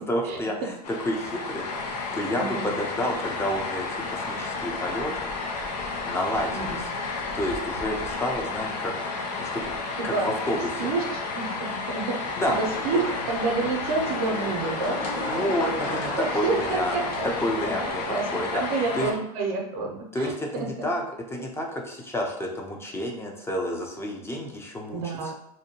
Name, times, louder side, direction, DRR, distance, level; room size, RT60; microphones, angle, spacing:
voice 1, 0.0-5.3 5.9-6.9 7.3-8.9 9.4-9.7 10.0-10.9 12.4-12.6 12.9-13.0 15.3-17.0 17.2-18.0 18.3-18.6 19.0-19.1 20.1-21.0 21.3-25.3, left 1 dB, 10° left, 1 dB, 0.5 m, -30 dB
sound 1, 0.8-19.1, left 3 dB, 85° left, 0.6 m, -32 dB
voice 2, 2.4-2.7 6.5-6.9 10.0-10.3 10.8-15.1 16.2-17.1 17.6-17.7 18.1-20.9 24.9-25.3, right 4 dB, 75° right, 1 dB, 0.6 m, -29 dB
sound 2, 12.5-17.9, left 1 dB, 50° left, 1.2 m, -35 dB
2.7 x 2.1 x 2.8 m, 0.78 s
supercardioid pair, 115°, 20 cm